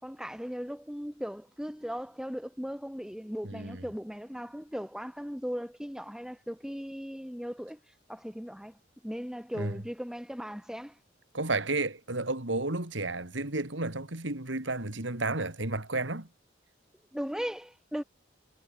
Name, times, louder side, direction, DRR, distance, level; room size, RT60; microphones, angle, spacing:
voice 1, 0.0-7.8 8.1-8.8 9.0-11.0 17.1-18.0, equal, 5° right, 5.0 m, -38 dB
voice 2, 3.4-3.8 9.5-9.8 11.3-16.3, right 2 dB, 70° right, 3.0 m, -32 dB
head